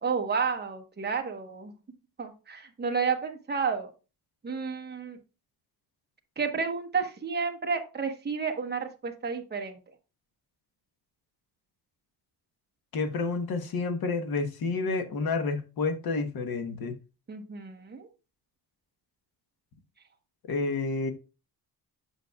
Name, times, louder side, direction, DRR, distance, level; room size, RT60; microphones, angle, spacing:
voice 1, 0.0-1.7 2.2-3.9 4.4-5.2 6.4-9.8 17.3-18.1, right 5 dB, 25° right, 4 dB, 1.0 m, -31 dB
voice 2, 12.9-16.9 20.5-21.1, left 4 dB, 60° left, 7 dB, 1.2 m, -29 dB
8.2 x 6.0 x 2.3 m, 0.31 s
wide cardioid pair, 160°, 40 cm